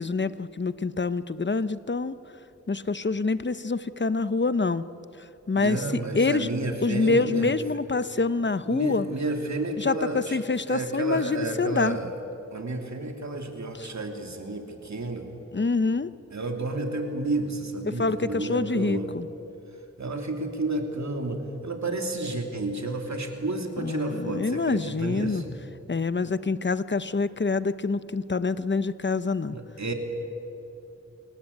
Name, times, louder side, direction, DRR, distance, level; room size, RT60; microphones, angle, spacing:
voice 1, 0.0-2.2 2.7-4.8 5.5-5.8 6.1-6.5 6.8-9.1 9.8-12.0 13.8-13.9 15.5-16.1 17.8-19.3 23.8-25.4 25.9-29.6, left 3 dB, 40° left, 14 dB, 0.8 m, -26 dB
voice 2, 5.6-7.5 8.7-10.4 10.7-12.1 12.5-15.3 16.3-19.1 20.0-25.5 29.5-29.9, right 2 dB, 65° right, 3 dB, 2.9 m, -31 dB
29.0 x 18.0 x 8.6 m, 2.9 s
wide cardioid pair, 55°, 30 cm